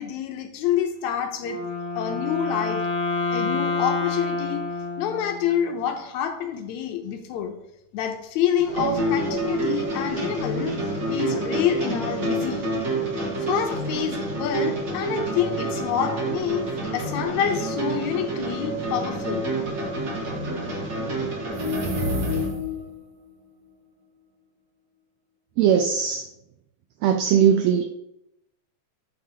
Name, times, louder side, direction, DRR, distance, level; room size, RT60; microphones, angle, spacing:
voice 1, 0.0-1.7 2.0-2.9 3.3-4.6 5.0-7.6 7.9-10.8 11.1-12.7 13.4-16.7 16.9-19.5, left 9 dB, 80° left, 5 dB, 1.9 m, -27 dB
Wind instrument woodwind instrument, 1.4-5.7, left 3 dB, 50° left, 1.9 m, -28 dB
sound 1, 8.6-22.5, right 2 dB, 40° right, 2.0 m, -28 dB
sound 2, 21.4-23.0, left 3 dB, 60° right, 1.8 m, -27 dB
voice 2, 25.6-26.3 27.0-27.8, right 8 dB, 85° right, 6 dB, 1.5 m, -19 dB
9.2 x 6.2 x 2.9 m, 0.84 s
omnidirectional pair, 3.6 m